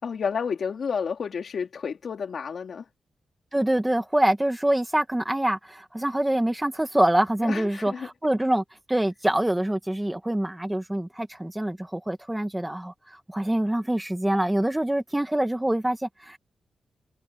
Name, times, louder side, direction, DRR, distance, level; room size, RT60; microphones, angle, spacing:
voice 1, 0.0-2.9 7.4-8.1, left 6 dB, 50° left, 3.4 m, -30 dB
voice 2, 3.5-16.4, right 1 dB, 5° right, 1.2 m, -25 dB
wide cardioid pair, 170°, 0 cm